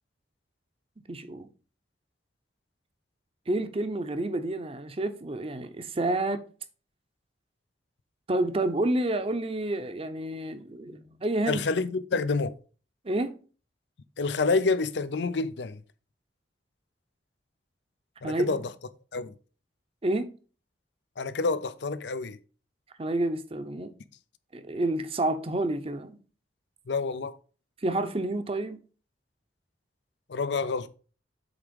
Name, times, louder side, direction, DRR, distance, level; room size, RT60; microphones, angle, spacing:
voice 1, 1.1-1.5 3.5-6.4 8.3-11.6 13.0-13.3 18.2-18.6 20.0-20.3 23.0-23.9 24.5-26.2 27.8-28.8, right 1 dB, 30° right, 0.7 m, -29 dB
voice 2, 11.5-12.5 14.2-15.8 18.2-18.6 19.1-19.3 21.2-22.4 26.9-27.4 30.3-30.9, left 4 dB, 75° left, 0.6 m, -28 dB
8.1 x 3.6 x 5.2 m
head